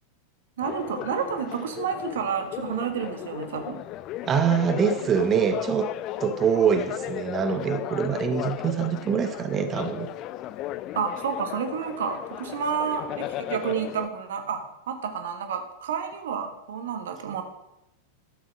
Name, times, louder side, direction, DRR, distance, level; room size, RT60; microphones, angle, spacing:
sound 1, 0.6-14.1, left 13 dB, 40° left, 0.4 m, -35 dB
voice 1, 0.6-3.8 10.9-17.4, right 7 dB, 60° right, 7 dB, 1.4 m, -30 dB
voice 2, 4.2-5.9 6.2-10.1, right 7 dB, 25° right, 9 dB, 0.9 m, -24 dB
11.5 x 7.3 x 6.1 m, 0.92 s
figure-of-eight pair, 90°, 0 cm